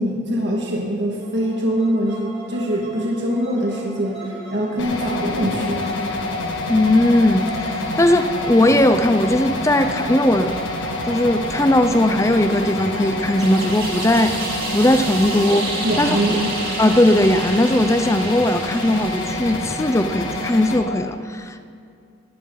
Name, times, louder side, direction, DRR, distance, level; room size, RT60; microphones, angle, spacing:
voice 1, 0.0-5.8 15.8-16.5, equal, 65° right, -2 dB, 1.9 m, -23 dB
sound 1, 1.2-18.9, right 2 dB, 30° right, 3.7 m, -39 dB
sound 2, 4.8-20.8, left 2 dB, 80° left, 1.6 m, -27 dB
voice 2, 6.7-10.6 11.1-14.3 14.7-15.7 16.0-16.4 16.8-21.6, left 1 dB, 15° left, 9 dB, 0.6 m, -18 dB
sound 3, 13.4-19.7, right 2 dB, 50° right, 3.3 m, -31 dB
19.0 x 15.0 x 3.9 m, 2.4 s
head